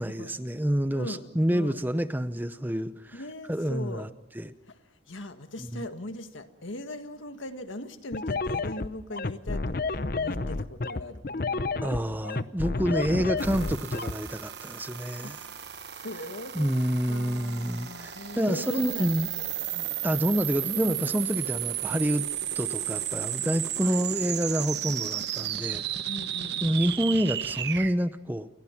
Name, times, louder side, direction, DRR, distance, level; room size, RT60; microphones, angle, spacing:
voice 1, 0.0-3.2 3.5-4.1 4.4-4.5 5.7-5.9 11.8-15.4 16.5-19.3 20.0-22.3 22.5-25.8 26.6-28.5, equal, 10° right, 0.8 m, -28 dB
voice 2, 0.9-1.8 3.1-4.1 4.7-12.2 12.9-13.3 15.2-16.7 17.1-20.0 21.3-21.5 23.8-24.0 26.0-26.8, left 1 dB, 85° left, 1.8 m, -40 dB
sound 1, 8.1-14.1, left 3 dB, 50° left, 0.8 m, -30 dB
sound 2, 13.4-27.9, right 11 dB, 60° right, 1.1 m, -34 dB
29.5 x 23.0 x 5.9 m
head